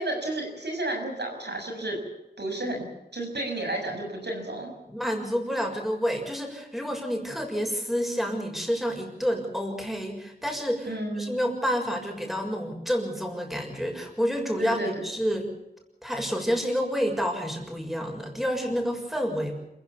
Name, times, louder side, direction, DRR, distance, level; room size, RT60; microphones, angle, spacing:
voice 1, 0.0-2.0 2.4-2.9 3.1-4.7 10.9-11.4 14.6-15.1, right 1 dB, 80° right, 3 dB, 6.7 m, -31 dB
voice 2, 4.9-15.5 16.0-19.5, equal, ahead, 2 dB, 6.7 m, -29 dB
28.0 x 15.5 x 7.1 m, 0.89 s
wide cardioid pair, 60°, 17 cm